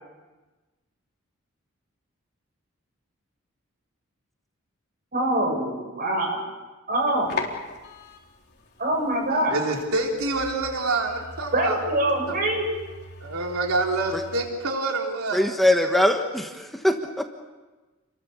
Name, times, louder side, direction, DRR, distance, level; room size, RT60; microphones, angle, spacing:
voice 1, 5.1-6.4 6.9-7.3 8.8-9.6 11.5-12.7, right 1 dB, 45° right, 1 dB, 7.7 m, -24 dB
sound 1, 6.9-14.5, left 3 dB, 50° left, 3.8 m, -40 dB
voice 2, 9.5-11.8 13.2-15.4, right 2 dB, 85° right, 1 dB, 3.6 m, -26 dB
voice 3, 15.3-17.2, left 1 dB, ahead, 4 dB, 1.3 m, -22 dB
29.5 x 22.5 x 7.0 m, 1.2 s
head